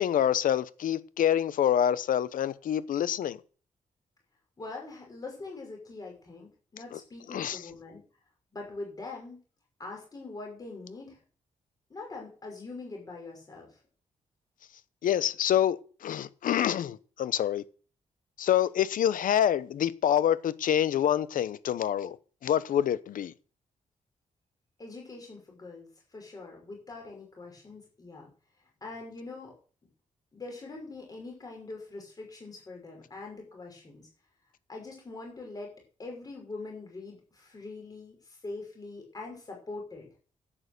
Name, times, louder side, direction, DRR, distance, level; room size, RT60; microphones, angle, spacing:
voice 1, 0.0-3.4 6.9-7.0 7.3-7.6 15.0-17.6 18.4-22.2 22.4-23.3, left 10 dB, 90° left, 0.8 m, -26 dB
voice 2, 4.6-8.0 8.5-9.4 9.8-11.2 11.9-13.8 24.8-25.9 26.1-28.3 28.8-29.5 30.3-34.0 34.7-35.7 36.0-40.1, left 3 dB, 30° left, 5.6 m, -43 dB
11.0 x 8.8 x 6.7 m
wide cardioid pair, 175°, 14 cm